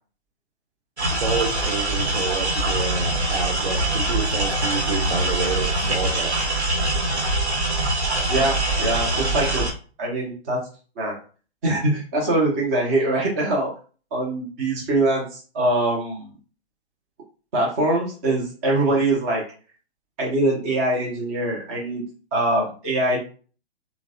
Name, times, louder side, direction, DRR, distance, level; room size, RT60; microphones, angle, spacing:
sound 1, 1.0-9.7, right 1 dB, 85° right, 0.9 m, -23 dB
voice 1, 1.1-6.4, right 5 dB, 55° right, 5 dB, 0.7 m, -29 dB
voice 2, 8.3-9.6 10.0-10.7 11.0-11.2 11.6-13.7 14.1-16.3 17.5-19.4 20.2-22.0 22.3-23.2, right 2 dB, 15° right, -3 dB, 0.4 m, -23 dB
3.1 x 2.0 x 2.5 m, 0.38 s
figure-of-eight pair, 125°, 32 cm